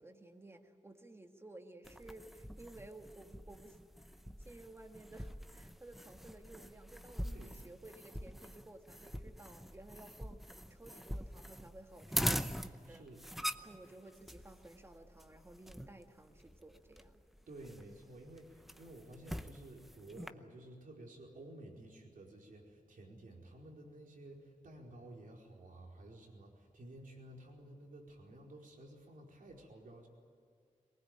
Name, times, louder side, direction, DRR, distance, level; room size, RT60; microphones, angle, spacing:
voice 1, 0.0-3.8 4.4-10.4 10.7-12.4 12.9-13.1 13.6-17.2, right 2 dB, 20° right, 5 dB, 1.9 m, -55 dB
sound 1, 1.8-20.3, equal, ahead, 0.7 m, -44 dB
voice 2, 7.2-7.6 12.8-13.2 17.5-30.1, right 1 dB, 80° right, 0 dB, 4.7 m, -53 dB
23.0 x 20.0 x 9.1 m, 2.3 s
wide cardioid pair, 160°, 14 cm